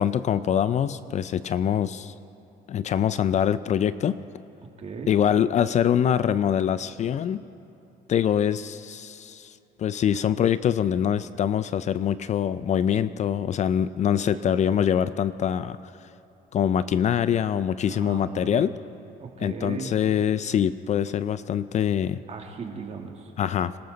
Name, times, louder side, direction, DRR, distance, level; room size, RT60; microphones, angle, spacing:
voice 1, 0.0-2.1 2.7-4.2 5.1-7.4 8.1-9.5 9.8-15.9 16.5-18.7 19.4-22.2 23.4-23.7, left 9 dB, 45° left, 15 dB, 0.4 m, -24 dB
voice 2, 4.8-5.1 17.9-18.6 19.2-20.0 22.3-23.3, right 5 dB, 40° right, 2 dB, 2.0 m, -36 dB
26.0 x 13.0 x 4.0 m, 2.9 s
cardioid pair, 110°, 17 cm